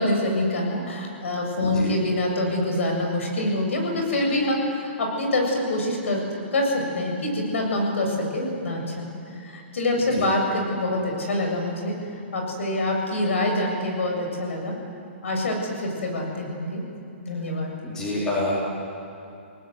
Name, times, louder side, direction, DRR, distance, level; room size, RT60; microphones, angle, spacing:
voice 1, 0.0-6.2 6.5-12.0 12.3-14.8 15.2-16.8 17.2-17.7, left 1 dB, 85° left, 1 dB, 7.4 m, -25 dB
voice 2, 1.6-1.9 10.2-10.3 17.8-18.5, left 2 dB, 10° left, -5 dB, 4.5 m, -27 dB
29.0 x 18.5 x 8.1 m, 2.7 s
hypercardioid pair, 175°, 7 cm